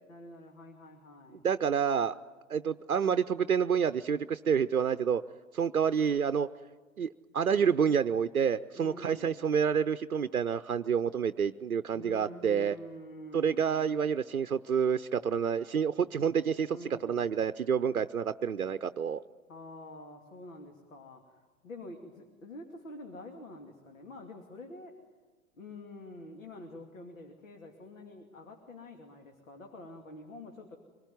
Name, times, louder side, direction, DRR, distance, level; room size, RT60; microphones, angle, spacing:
voice 1, 0.1-1.4 8.7-9.4 11.9-13.9 16.7-17.4 19.5-25.0 25.6-30.8, left 1 dB, 70° left, 3 dB, 2.7 m, -47 dB
voice 2, 1.4-2.2 2.5-5.2 5.5-6.5 7.0-12.7 13.3-16.8 17.0-19.2, right 7 dB, 85° right, 11 dB, 0.7 m, -28 dB
25.5 x 20.0 x 9.4 m, 1.4 s
figure-of-eight pair, 95°, 42 cm